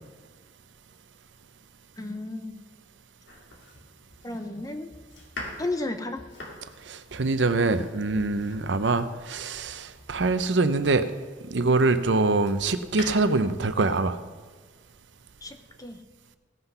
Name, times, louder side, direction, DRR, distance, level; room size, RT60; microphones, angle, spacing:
voice 1, 2.0-2.6 4.2-4.9 5.6-6.2 15.4-16.0, left 2 dB, 20° left, 7 dB, 0.8 m, -33 dB
Domestic sounds home sounds, 3.3-11.4 12.0-13.1, left 1 dB, 80° left, 2.3 m, -44 dB
voice 2, 6.9-11.1 11.5-14.2, right 3 dB, 85° right, 10 dB, 0.7 m, -24 dB
16.5 x 5.9 x 5.6 m, 1.5 s
head